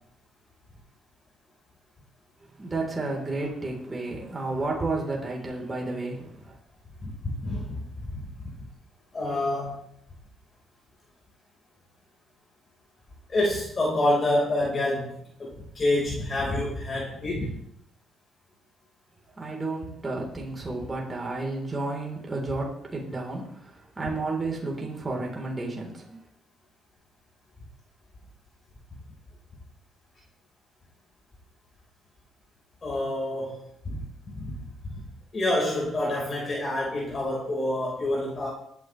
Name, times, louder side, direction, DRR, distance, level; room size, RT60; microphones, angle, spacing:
voice 1, 2.6-6.5 19.4-23.5 24.0-26.2, right 2 dB, 20° right, -1 dB, 3.8 m, -31 dB
voice 2, 7.0-8.3 9.1-9.9 13.3-17.6 32.8-34.6 35.3-38.5, left 1 dB, 35° left, -3 dB, 4.4 m, -28 dB
20.5 x 9.6 x 3.3 m, 0.71 s
cardioid pair, 90°, 0 cm